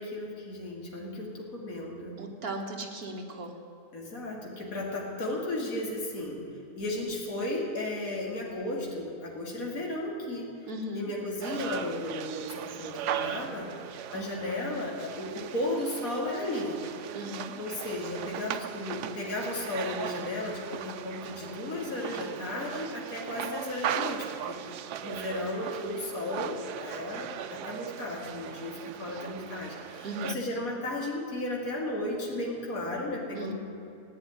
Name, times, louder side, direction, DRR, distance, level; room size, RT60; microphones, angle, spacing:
voice 1, 0.0-2.2 3.9-6.4 6.8-10.5 10.9-13.7 14.1-16.9 17.6-24.6 25.0-33.5, left 1 dB, 60° left, -3 dB, 2.9 m, -34 dB
voice 2, 2.2-3.6 10.7-11.0 14.1-14.2 17.1-17.6 30.0-30.4 33.3-33.5, right 1 dB, 70° right, 3 dB, 2.1 m, -37 dB
sound 1, 11.4-30.3, right 10 dB, 85° right, 1.3 m, -38 dB
16.0 x 9.3 x 9.5 m, 2.8 s
omnidirectional pair, 1.7 m